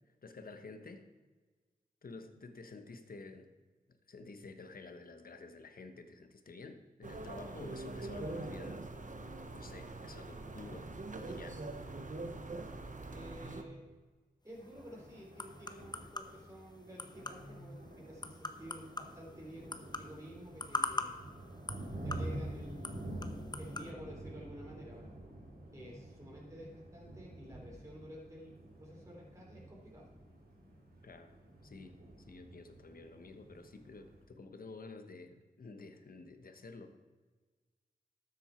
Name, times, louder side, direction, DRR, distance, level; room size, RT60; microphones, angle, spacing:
voice 1, 0.2-1.0 2.0-3.5 4.1-8.9 9.5-10.9 11.2-11.6 31.0-31.4 31.6-32.0 32.3-36.9, left 3 dB, 65° left, 8 dB, 1.2 m, -50 dB
sound 1, 7.0-13.6, right 2 dB, 55° right, 1.1 m, -43 dB
voice 2, 13.0-13.8 14.4-21.1 22.0-23.0 23.6-25.1 25.7-30.1, equal, 20° right, -4 dB, 3.9 m, -51 dB
sound 2, 14.5-23.9, left 2 dB, 25° left, 0.9 m, -44 dB
Thunder, 14.5-34.2, right 1 dB, 80° right, 2.8 m, -48 dB
13.0 x 7.9 x 4.5 m, 1.3 s
cardioid pair, 55°, 16 cm